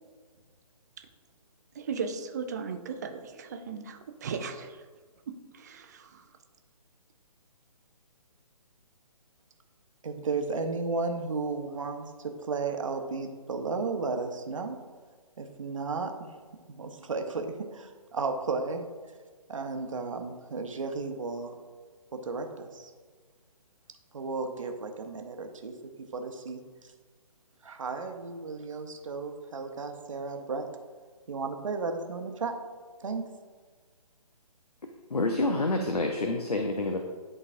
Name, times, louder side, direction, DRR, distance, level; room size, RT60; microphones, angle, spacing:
voice 1, 1.7-4.9 5.3-6.3, right 5 dB, 25° right, 7 dB, 0.5 m, -37 dB
voice 2, 10.0-12.0 12.4-14.8 15.4-16.3 16.7-18.9 19.5-21.6 22.1-22.9 24.1-25.7 26.1-26.9 27.6-30.7 31.3-32.6 33.0-33.2, right 4 dB, 55° right, 5 dB, 0.9 m, -34 dB
voice 3, 35.1-37.0, left 2 dB, 80° left, 4 dB, 0.7 m, -27 dB
11.0 x 3.9 x 2.6 m, 1.5 s
figure-of-eight pair, 140°, 20 cm